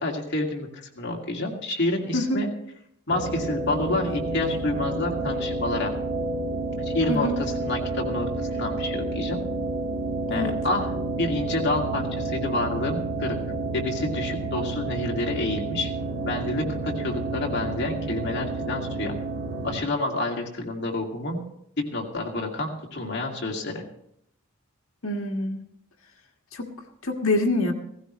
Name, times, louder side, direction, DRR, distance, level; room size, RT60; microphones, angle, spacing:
voice 1, 0.0-2.5 3.1-6.0 6.9-9.4 10.3-10.9 11.2-13.4 13.7-15.9 16.2-19.1 19.6-21.4 21.8-23.8, left 2 dB, 55° left, 0 dB, 2.3 m, -28 dB
sound 1, 3.1-19.8, right 2 dB, 70° right, 1.9 m, -30 dB
voice 2, 7.1-7.4 10.3-10.6 25.0-25.6 26.5-26.7 27.0-27.7, left 2 dB, 75° left, 2 dB, 1.7 m, -25 dB
16.5 x 15.5 x 3.1 m, 0.72 s
head